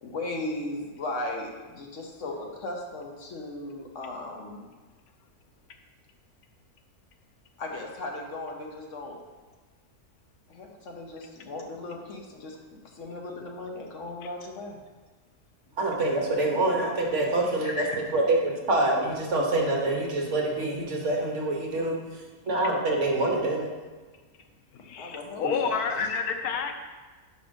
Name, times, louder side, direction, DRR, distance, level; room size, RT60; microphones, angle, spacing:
voice 1, 0.0-4.7 7.6-9.2 10.5-14.8 17.6-18.2 25.0-26.1, left 2 dB, 60° left, 1 dB, 1.2 m, -37 dB
voice 2, 15.8-17.8 18.1-23.7, right 2 dB, 55° right, 0 dB, 1.2 m, -26 dB
voice 3, 24.7-26.8, left 6 dB, 85° left, 6 dB, 1.2 m, -29 dB
5.3 x 4.9 x 5.1 m, 1.3 s
omnidirectional pair, 1.6 m